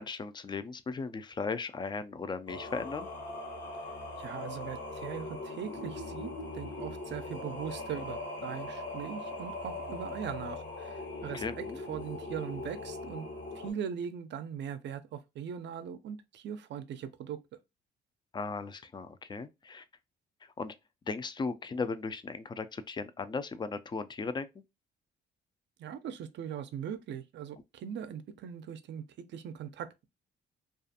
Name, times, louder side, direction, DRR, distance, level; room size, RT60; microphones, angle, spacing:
voice 1, 0.0-3.1 11.3-11.8 18.3-19.8 20.4-20.8 21.1-24.6, left 4 dB, 25° left, 0.3 m, -37 dB
Singing, 2.5-13.7, left 2 dB, 65° left, 1.0 m, -40 dB
voice 2, 4.2-11.4 11.9-13.3 13.5-17.4 25.8-29.0 29.3-30.0, right 8 dB, 65° right, 0.4 m, -40 dB
2.4 x 2.4 x 2.6 m
cardioid pair, 90°, 20 cm